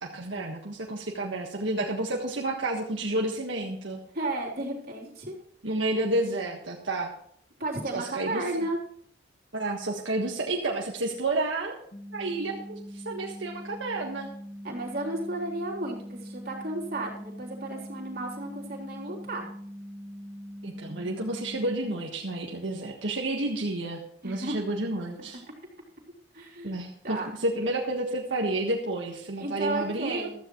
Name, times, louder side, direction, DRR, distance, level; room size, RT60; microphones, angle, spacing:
voice 1, 0.0-4.0 5.6-7.1 7.9-8.7 9.5-11.8 12.1-14.3 20.6-25.4 26.6-30.3, right 2 dB, 85° right, -1 dB, 1.6 m, -30 dB
voice 2, 4.1-5.4 7.6-8.8 14.6-19.5 24.2-24.6 26.3-26.8 27.0-27.3 29.4-30.3, right 2 dB, 50° right, -2 dB, 3.6 m, -33 dB
sound 1, 11.9-21.9, equal, 30° left, 1.3 m, -42 dB
15.0 x 13.5 x 3.1 m, 0.64 s
head